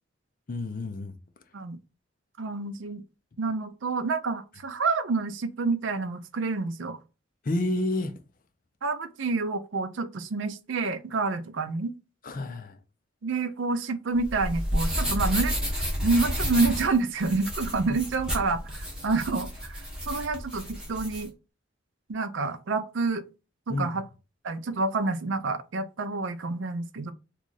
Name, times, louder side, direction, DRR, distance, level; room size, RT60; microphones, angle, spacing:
voice 1, 0.5-1.1 7.4-8.1 12.2-12.8 17.8-18.0 23.7-23.9, left 2 dB, 45° left, 0.5 m, -29 dB
voice 2, 2.4-3.0 3.4-7.0 8.8-11.9 13.2-15.6 16.0-21.3 22.1-23.2 23.7-24.0 24.4-27.1, right 3 dB, 75° right, 0.5 m, -28 dB
sound 1, 14.2-21.2, equal, 5° right, 1.1 m, -31 dB
3.1 x 2.4 x 3.9 m
head